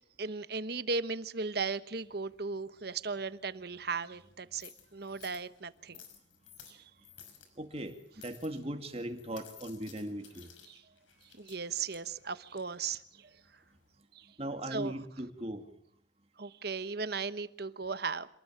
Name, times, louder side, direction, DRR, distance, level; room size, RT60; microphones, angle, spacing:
voice 1, 0.2-6.0 6.7-6.9 10.7-10.8 11.3-13.3 14.1-14.3 14.7-14.9 16.4-18.4, right 4 dB, 55° right, 1.1 m, -37 dB
sound 1, 1.9-14.0, left 7 dB, 85° left, 6.0 m, -58 dB
voice 2, 7.6-10.5 14.4-15.6, right 1 dB, 30° right, 2.3 m, -39 dB
27.0 x 20.0 x 7.4 m
head